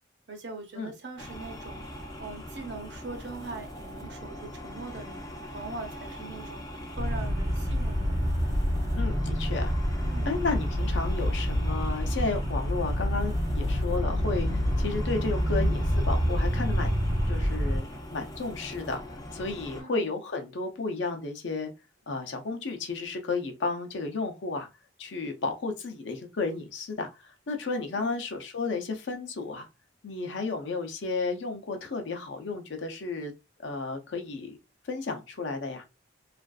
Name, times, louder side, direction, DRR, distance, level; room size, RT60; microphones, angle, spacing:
voice 1, 0.3-5.2 5.5-8.2 10.0-10.3 19.8-20.1 28.0-28.2, right 3 dB, 60° right, 0.7 m, -42 dB
sound 1, 1.2-19.8, left 1 dB, 20° left, 0.4 m, -41 dB
sound 2, 7.0-17.8, equal, 30° right, 0.6 m, -27 dB
voice 2, 8.9-9.7 10.3-16.9 17.3-17.9 18.1-21.7 22.1-24.7 25.0-29.7 30.0-33.3 33.6-34.6 34.8-35.8, left 3 dB, 70° left, 0.6 m, -33 dB
2.5 x 2.3 x 2.3 m
head